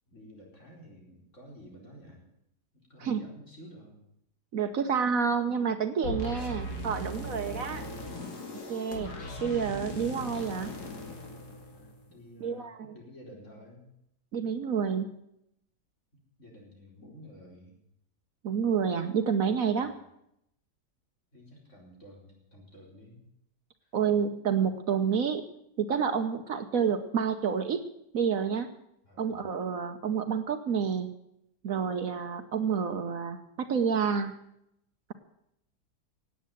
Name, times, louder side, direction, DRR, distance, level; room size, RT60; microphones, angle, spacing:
voice 1, 0.1-2.2 2.7-4.0 11.7-13.9 16.4-17.8 19.8-20.0 21.3-23.2 23.8-23.9 29.0-29.5, equal, 45° left, -2 dB, 4.9 m, -52 dB
voice 2, 4.5-7.9 8.7-9.1 9.4-10.7 12.4-12.9 14.3-15.2 18.4-20.0 23.9-25.4 25.8-27.8 28.1-28.7 29.2-31.1 31.6-34.3, right 6 dB, 60° right, 8 dB, 1.3 m, -29 dB
sound 1, 6.0-12.2, left 1 dB, 70° left, 2.9 m, -39 dB
17.5 x 8.6 x 9.1 m, 0.79 s
omnidirectional pair, 1.8 m